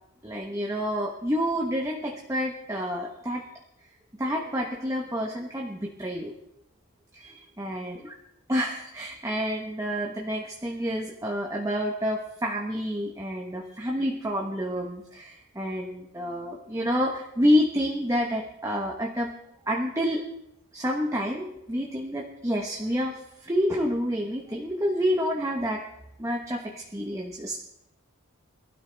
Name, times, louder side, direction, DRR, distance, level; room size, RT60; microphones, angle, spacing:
voice 1, 0.2-3.4 4.2-6.3 7.1-8.0 8.5-19.3 19.7-20.2 20.7-25.8 26.2-27.6, equal, 15° right, 0 dB, 1.2 m, -28 dB
22.5 x 12.5 x 3.5 m, 0.83 s
head